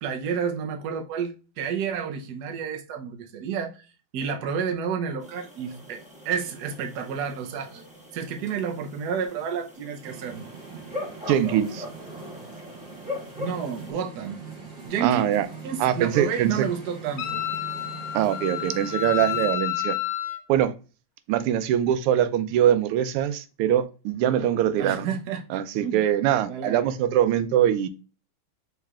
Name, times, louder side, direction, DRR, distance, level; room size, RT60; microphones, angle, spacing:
voice 1, 0.0-3.9 4.1-7.8 8.1-10.5 13.4-14.4 14.8-15.3 15.6-17.4 24.7-26.0 26.5-26.9, right 7 dB, 60° right, 1.1 m, -30 dB
sound 1, 5.2-13.9, left 2 dB, 5° right, 0.7 m, -41 dB
sound 2, 10.0-19.5, right 5 dB, 35° right, 1.7 m, -42 dB
voice 2, 11.3-11.8 15.0-15.5 15.8-16.5 18.1-20.0 20.5-20.7 21.3-25.1 25.5-27.9, right 10 dB, 90° right, 1.5 m, -23 dB
Wind instrument woodwind instrument, 17.2-20.4, left 14 dB, 70° left, 1.4 m, -30 dB
6.5 x 3.2 x 2.4 m
omnidirectional pair, 2.4 m